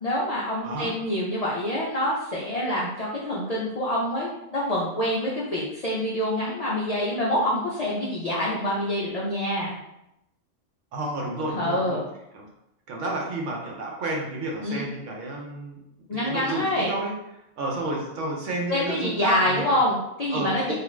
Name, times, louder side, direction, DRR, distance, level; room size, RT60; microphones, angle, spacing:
voice 1, 0.0-9.8 11.5-12.0 14.6-14.8 16.1-16.9 18.7-20.7, left 1 dB, 60° left, -6 dB, 0.4 m, -26 dB
voice 2, 10.9-12.0 12.3-12.5 12.9-15.8 16.1-17.1 17.6-19.7 20.3-20.7, right 2 dB, 75° right, -1 dB, 1.0 m, -31 dB
2.5 x 2.4 x 3.1 m, 0.85 s
omnidirectional pair, 1.3 m